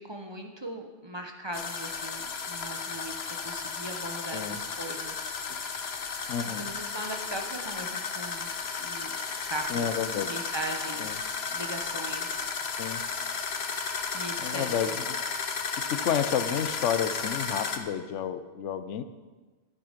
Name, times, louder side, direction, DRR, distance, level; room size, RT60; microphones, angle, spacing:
voice 1, 0.0-5.4 6.6-8.5 8.8-9.1 9.4-9.9 10.2-12.5 13.8-14.9, right 1 dB, 25° right, 3 dB, 0.9 m, -39 dB
sound 1, 1.5-17.8, left 5 dB, 65° left, 1.1 m, -34 dB
voice 2, 6.3-6.7 9.7-10.3 11.0-11.2 12.8-13.0 14.4-15.2 15.9-19.0, left 8 dB, 90° left, 11 dB, 1.0 m, -30 dB
11.0 x 9.6 x 5.1 m, 1.3 s
omnidirectional pair, 1.2 m